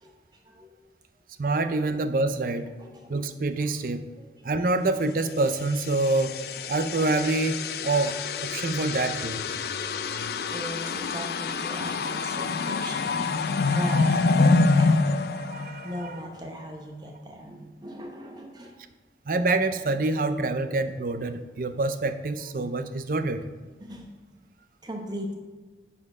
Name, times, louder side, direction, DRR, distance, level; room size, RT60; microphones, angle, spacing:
voice 1, 0.0-0.8 2.8-3.1 4.2-4.5 10.5-15.2 15.8-18.8 23.8-24.1 24.8-25.3, equal, 25° right, 2 dB, 0.8 m, -39 dB
voice 2, 1.4-2.7 3.1-4.0 4.4-6.3 6.7-9.4 10.1-10.3 13.7-14.1 15.5-16.2 19.3-23.4, right 2 dB, 50° right, 10 dB, 0.5 m, -26 dB
sound 1, 5.6-16.3, left 3 dB, 60° left, 0.4 m, -26 dB
10.0 x 4.3 x 4.9 m, 1.3 s
head